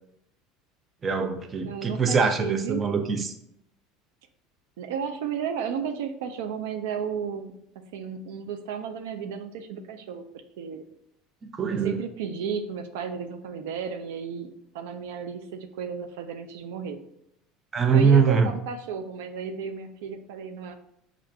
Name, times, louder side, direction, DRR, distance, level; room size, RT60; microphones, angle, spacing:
voice 1, 1.0-3.3 11.4-12.0 17.7-18.5, right 6 dB, 25° right, 6 dB, 0.4 m, -23 dB
voice 2, 1.6-2.8 4.8-10.3 10.6-10.8 11.7-14.5 14.7-17.0 17.9-20.7, right 6 dB, 90° right, 7 dB, 0.4 m, -33 dB
6.2 x 2.4 x 2.2 m, 0.75 s
supercardioid pair, 125°, 0 cm